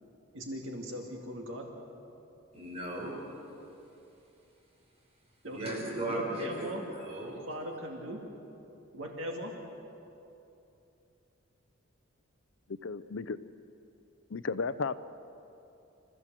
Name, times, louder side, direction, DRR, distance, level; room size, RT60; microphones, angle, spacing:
voice 1, 0.3-1.7 5.4-6.8 7.2-8.2 8.9-9.5, equal, 65° right, 1 dB, 2.3 m, -39 dB
voice 2, 2.5-3.1 5.5-7.4, right 1 dB, 30° right, -2 dB, 5.6 m, -37 dB
voice 3, 12.8-13.4 14.3-14.9, left 4 dB, 65° left, 14 dB, 0.6 m, -33 dB
27.0 x 14.5 x 7.5 m, 2.9 s
head